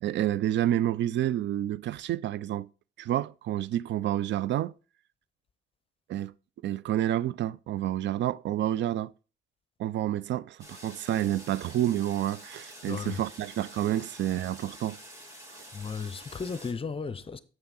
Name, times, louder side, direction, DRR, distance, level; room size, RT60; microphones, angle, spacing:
voice 1, 0.0-2.7 3.0-4.7 6.1-6.3 6.6-9.1 9.8-15.0, right 12 dB, 65° right, 0.4 m, -29 dB
sound 1, 10.6-16.7, equal, 15° right, 3.1 m, -48 dB
voice 2, 12.9-13.2 15.7-17.4, left 5 dB, 30° left, 0.7 m, -35 dB
7.8 x 5.8 x 4.1 m
cardioid pair, 90°, 20 cm